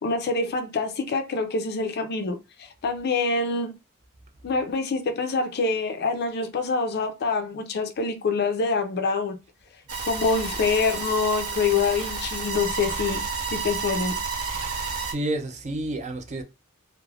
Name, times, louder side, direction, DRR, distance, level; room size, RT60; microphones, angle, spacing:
voice 1, 0.0-3.7 4.4-9.4 10.0-13.2 13.5-14.2, left 4 dB, 45° left, 0.4 m, -26 dB
sound 1, 9.9-15.1, right 4 dB, 75° right, 0.8 m, -30 dB
voice 2, 14.7-16.4, right 1 dB, 30° right, 0.4 m, -30 dB
3.2 x 2.1 x 2.3 m
head